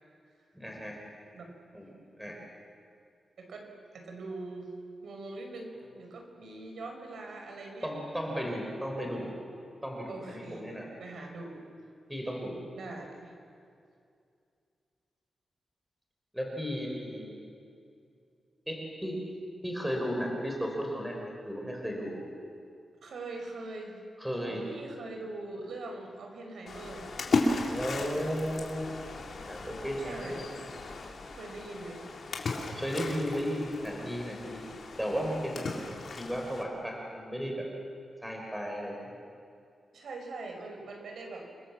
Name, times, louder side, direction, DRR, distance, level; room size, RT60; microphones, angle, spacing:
voice 1, 0.5-1.0 1.7-1.9 2.2-2.4 7.8-9.3 9.8-10.9 12.1-12.6 16.3-17.3 18.7-19.2 19.6-22.2 24.2-24.6 27.7-28.8 29.4-30.5 32.7-34.7 35.0-35.8 36.1-37.7 38.2-38.9, equal, 5° right, 0 dB, 4.6 m, -34 dB
voice 2, 3.4-4.7 5.0-7.9 8.3-8.5 10.1-11.7 12.8-13.3 23.0-24.0 24.4-27.1 30.0-30.6 31.3-32.1 39.9-41.5, right 2 dB, 80° right, 3 dB, 5.6 m, -42 dB
Splash splatter, 26.7-36.6, left 3 dB, 55° left, 3.4 m, -36 dB
29.0 x 23.0 x 7.4 m, 2.4 s
wide cardioid pair, 140°, 0 cm